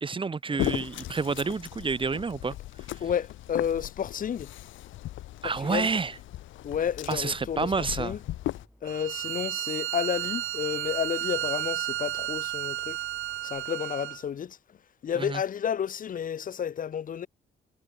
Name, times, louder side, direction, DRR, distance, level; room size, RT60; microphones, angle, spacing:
voice 1, 0.0-2.6 5.4-6.1 7.1-8.1 15.2-15.4, right 4 dB, 25° right, 0.9 m, -29 dB
sound 1, 0.6-8.7, left 15 dB, 75° left, 0.7 m, -37 dB
voice 2, 3.0-4.5 5.4-5.9 6.6-8.2 8.8-13.0 13.4-14.6 15.0-17.3, left 8 dB, 45° left, 0.7 m, -31 dB
sound 2, 6.6-13.7, equal, ahead, 5.4 m, -60 dB
Bowed string instrument, 8.9-14.2, right 15 dB, 85° right, 1.1 m, -32 dB
cardioid pair, 90°, 20 cm